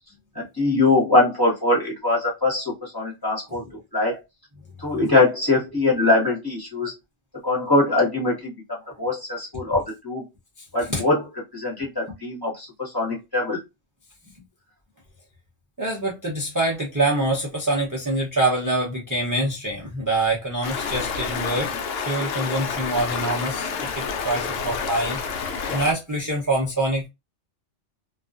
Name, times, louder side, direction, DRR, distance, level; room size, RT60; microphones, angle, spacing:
voice 1, 0.3-3.6 3.9-4.2 4.8-6.9 7.4-8.5 9.0-10.2 10.7-11.2 11.5-13.6, left 2 dB, 20° left, 0.9 m, -22 dB
voice 2, 10.6-11.0 15.8-21.8 22.1-25.2 25.7-27.1, right 2 dB, 25° right, 0.4 m, -25 dB
Stream, 20.6-25.9, left 5 dB, 80° left, 0.9 m, -29 dB
2.3 x 2.3 x 2.4 m
omnidirectional pair, 1.3 m